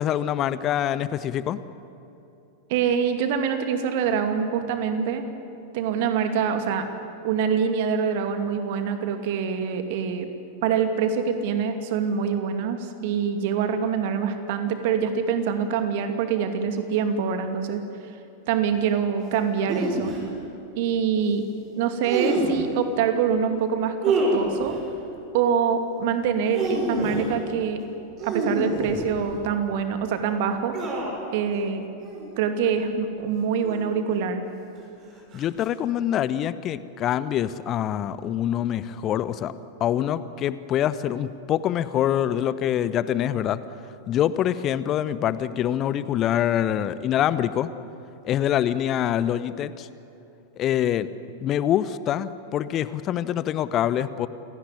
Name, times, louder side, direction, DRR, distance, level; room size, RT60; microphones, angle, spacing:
voice 1, 0.0-1.6 35.3-39.5 39.8-43.6 44.1-47.7 48.2-49.9 50.6-51.1 51.4-54.3, left 11 dB, 30° left, 15 dB, 0.9 m, -25 dB
voice 2, 2.7-5.3 5.7-6.9 7.2-10.3 10.6-17.8 18.5-20.1 20.8-21.4 21.7-24.8 25.3-27.8 28.2-30.8 31.3-31.8 32.4-34.4, right 7 dB, 50° right, 7 dB, 2.5 m, -25 dB
sound 1, 19.7-20.2 22.0-22.7 24.0-24.8 26.3-27.4 28.2-29.4 30.7-31.3 32.0-32.3 33.6-34.1 35.3-35.6, right 2 dB, 35° right, 6.2 m, -27 dB
28.5 x 18.0 x 9.8 m, 2.9 s
figure-of-eight pair, 90°, 0 cm